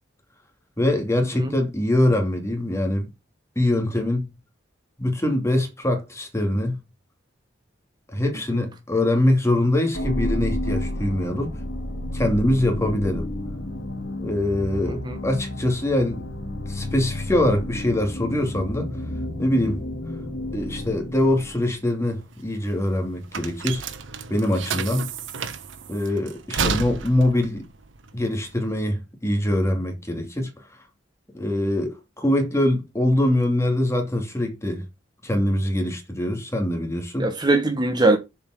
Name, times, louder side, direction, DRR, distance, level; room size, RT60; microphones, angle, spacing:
voice 1, 0.8-3.1 3.6-4.3 5.0-6.8 8.1-11.5 12.1-13.3 14.2-16.2 16.7-18.9 19.4-19.8 20.5-23.8 24.3-25.1 25.9-27.6 28.1-30.5 31.3-34.8 35.2-37.3, left 1 dB, 15° left, 2.4 m, -23 dB
sound 1, 9.9-21.8, left 1 dB, 75° left, 2.1 m, -31 dB
voice 2, 14.9-15.2 24.9-25.1 37.2-38.2, right 2 dB, 25° right, 1.1 m, -22 dB
sound 2, 22.1-28.9, right 5 dB, 90° right, 1.1 m, -31 dB
7.1 x 5.2 x 6.3 m
head